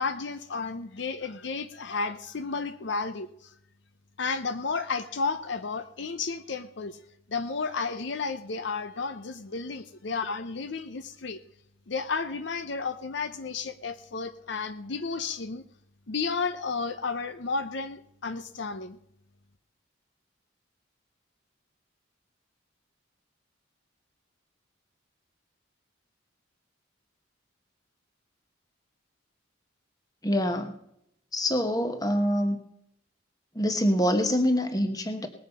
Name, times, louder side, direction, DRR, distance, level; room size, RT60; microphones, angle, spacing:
voice 1, 0.0-3.5 4.2-7.0 7.3-11.4 11.9-15.6 16.1-19.0, left 4 dB, 60° left, 10 dB, 0.7 m, -32 dB
voice 2, 30.2-30.7 31.3-32.6 33.5-35.3, equal, 20° left, 7 dB, 1.2 m, -25 dB
19.5 x 7.8 x 5.4 m, 0.76 s
head